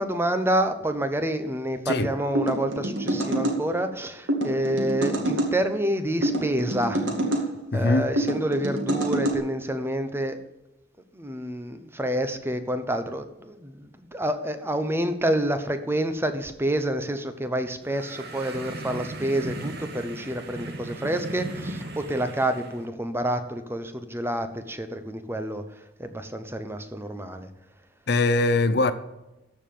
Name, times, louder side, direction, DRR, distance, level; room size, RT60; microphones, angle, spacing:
voice 1, 0.0-7.1 7.7-10.4 11.1-25.6 26.0-27.5, right 1 dB, 15° right, 0.9 m, -28 dB
voice 2, 1.9-2.2 7.7-8.1 28.1-28.9, left 2 dB, 60° left, 0.7 m, -22 dB
sound 1, 2.3-3.6 4.3-5.5 6.2-7.5 8.2-9.4, right 1 dB, 90° right, 2.2 m, -26 dB
sound 2, 17.8-22.9, right 1 dB, 60° right, 1.6 m, -37 dB
13.5 x 5.3 x 7.6 m
head